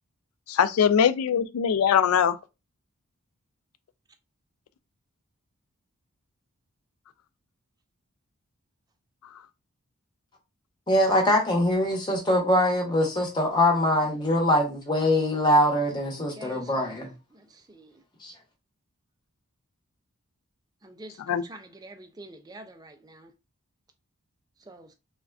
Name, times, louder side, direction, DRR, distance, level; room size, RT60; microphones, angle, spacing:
voice 1, 0.5-2.4 21.3-21.4, left 8 dB, 75° left, 0.3 m, -21 dB
voice 2, 10.9-17.1 18.2-18.3, left 1 dB, 20° left, 0.8 m, -23 dB
voice 3, 16.4-16.8 20.8-21.1 21.5-23.2 24.7-24.8, right 1 dB, 15° right, 0.3 m, -45 dB
3.5 x 2.2 x 2.3 m
head